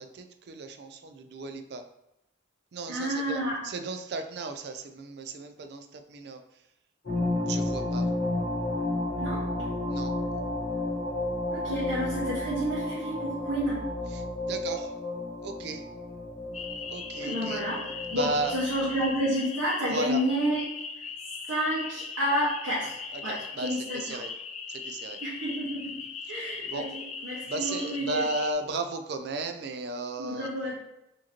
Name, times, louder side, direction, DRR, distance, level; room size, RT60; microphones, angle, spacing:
voice 1, 0.0-1.8 2.7-3.4 3.6-6.4 7.5-8.1 9.9-10.1 14.2-14.9 15.4-15.8 16.9-17.6 18.2-18.5 19.9-20.2 23.3-23.7 24.1-24.3 24.9-25.2 26.7-26.9 27.5-30.5, right 3 dB, 55° right, 8 dB, 0.4 m, -34 dB
voice 2, 2.9-3.6 9.2-9.5 11.5-13.8 17.2-20.6 21.5-24.2 25.2-26.0 26.3-28.3 30.2-30.8, equal, 85° right, -9 dB, 1.3 m, -30 dB
sound 1, 7.0-19.2, left 2 dB, 50° left, 1.4 m, -32 dB
sound 2, 16.5-28.5, left 5 dB, 35° left, 0.3 m, -39 dB
4.7 x 3.0 x 2.9 m, 0.87 s
head